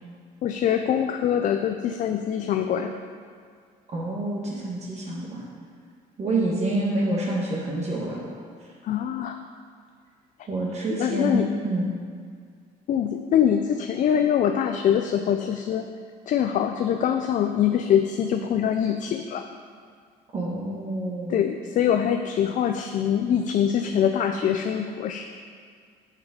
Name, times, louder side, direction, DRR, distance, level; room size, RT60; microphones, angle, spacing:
voice 1, 0.4-3.0 8.8-9.4 11.0-11.5 12.9-15.9 16.3-19.4 21.3-25.2, left 9 dB, 50° left, 6 dB, 0.4 m, -24 dB
voice 2, 3.9-5.4 6.2-8.2 10.5-11.9 20.3-21.4, right 1 dB, 40° right, -4 dB, 1.2 m, -27 dB
5.9 x 5.8 x 5.1 m, 2.1 s
cardioid pair, 110°, 17 cm